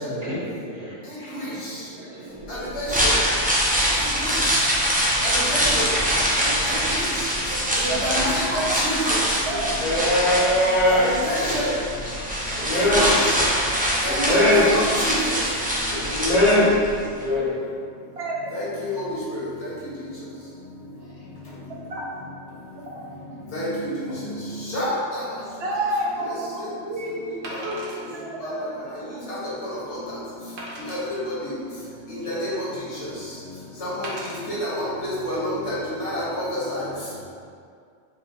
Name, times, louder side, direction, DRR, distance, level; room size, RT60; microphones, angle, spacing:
voice 1, 0.0-3.0 6.4-7.1 12.0-12.1 17.3-17.5 21.0-21.3, equal, 35° right, -9 dB, 0.9 m, -38 dB
voice 2, 2.5-3.1 4.2-4.4 5.2-5.8 6.6-6.7 7.8-9.0 10.9-11.7 12.7-13.3 14.0-15.1 18.5-18.7 18.9-19.1 19.3-19.4 23.5-23.9 24.7-25.2 29.3-29.4 30.9-31.0 32.1-32.7 33.8-34.1 34.5-36.9, left 1 dB, 65° left, -9 dB, 1.6 m, -28 dB
sound 1, 2.7-16.9 17.2-17.3, equal, 15° right, 0.3 m, -24 dB
voice 3, 7.5-8.8 9.2-9.7 10.0-10.3 14.0-14.5 14.9-15.0 18.2-18.5 21.9-22.0 22.9-23.0 25.6-27.1 27.6-27.8 28.1-28.6, right 1 dB, 65° right, -3 dB, 0.8 m, -30 dB
voice 4, 9.5-11.1 12.6-13.1 14.0-14.8 15.9-16.8 17.1-17.5, left 1 dB, 40° left, -9 dB, 0.7 m, -20 dB
Wood, 25.8-26.0 27.4-28.0 28.7-28.8 29.3-29.4 30.6-31.1 31.8-32.6 34.0-34.4 35.1-35.3, right 1 dB, 90° right, 1.2 m, -37 dB
4.4 x 2.6 x 3.5 m, 2.2 s
omnidirectional pair, 1.2 m